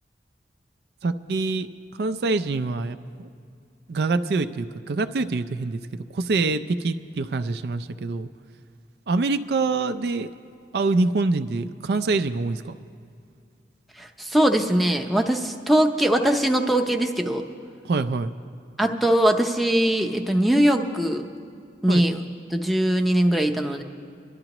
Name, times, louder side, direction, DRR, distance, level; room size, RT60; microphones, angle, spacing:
voice 1, 1.0-1.7 2.0-3.3 3.9-5.8 6.1-8.3 9.1-10.3 10.7-12.7 17.8-18.3 21.9-22.1, right 3 dB, 60° right, 10 dB, 0.4 m, -25 dB
voice 2, 14.0-17.4 18.8-21.2 21.8-22.2 22.5-23.8, right 1 dB, ahead, 4 dB, 0.6 m, -21 dB
25.5 x 11.5 x 3.0 m, 2.3 s
head